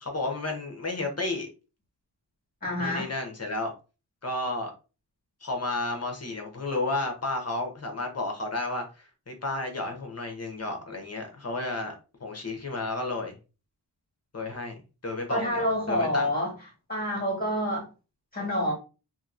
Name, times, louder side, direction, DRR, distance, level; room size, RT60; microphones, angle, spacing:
voice 1, 0.0-1.5 2.8-3.7 4.2-4.7 5.4-11.9 12.2-13.3 14.3-14.8 15.0-16.3, left 2 dB, 35° left, 3 dB, 0.9 m, -32 dB
voice 2, 2.6-3.1 15.3-16.5 16.9-17.9 18.3-18.7, left 1 dB, 20° left, -1 dB, 1.5 m, -27 dB
2.8 x 2.8 x 2.5 m, 0.32 s
wide cardioid pair, 100°, 42 cm